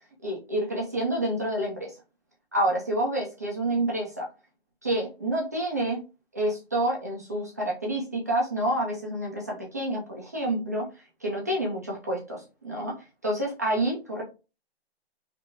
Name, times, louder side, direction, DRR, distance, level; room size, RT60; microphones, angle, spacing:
voice 1, 0.2-1.9 2.5-4.3 4.8-6.0 6.3-10.9 11.2-12.9 13.2-14.2, right 1 dB, 15° right, -2 dB, 0.4 m, -28 dB
3.3 x 2.9 x 2.7 m, 0.30 s
hypercardioid pair, 155°, 32 cm